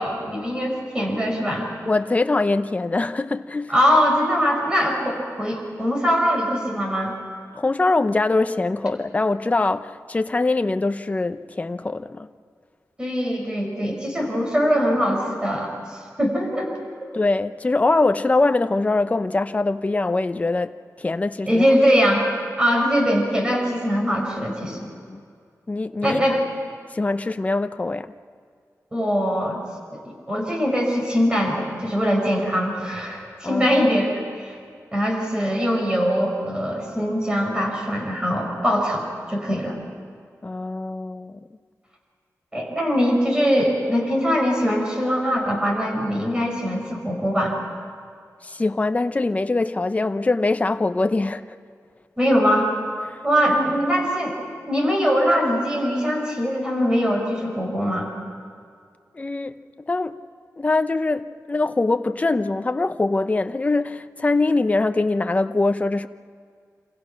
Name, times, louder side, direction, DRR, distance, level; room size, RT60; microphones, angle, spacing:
voice 1, 0.0-1.7 3.7-7.1 13.0-16.7 21.5-22.3 22.6-24.9 26.0-26.4 28.9-29.6 29.9-34.6 34.9-39.8 42.5-47.6 52.2-52.7 53.2-54.3 54.7-58.1, equal, 15° right, 5.9 m, -22 dB
voice 2, 1.9-3.7 7.5-12.3 17.1-20.7 21.0-21.6 25.1-25.2 25.7-26.2 26.9-28.1 33.4-33.8 40.4-41.4 48.4-51.4 53.1-53.2 59.1-60.2 60.6-66.1, left 3 dB, 25° left, 0.8 m, -23 dB
28.5 x 27.5 x 5.9 m
wide cardioid pair, 145°, 6 cm